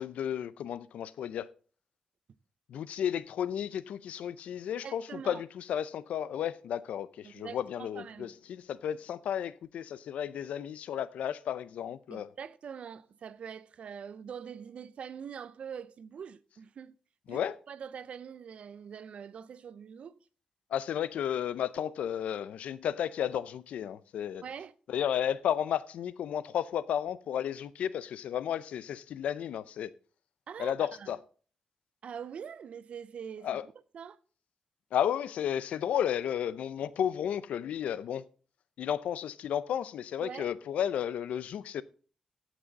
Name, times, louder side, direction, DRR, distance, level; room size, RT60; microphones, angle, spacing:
voice 1, 0.0-1.5 2.7-12.3 17.3-17.6 20.7-24.4 24.9-29.9 30.6-31.2 33.4-33.7 34.9-38.2 38.8-41.8, left 9 dB, 90° left, 0.5 m, -33 dB
voice 2, 4.8-5.4 7.2-8.3 12.1-16.9 17.3-20.2 24.4-24.7 30.5-31.2 32.0-34.2 40.2-40.5, right 7 dB, 65° right, 0.6 m, -44 dB
16.5 x 6.2 x 4.0 m
cardioid pair, 85°, 2 cm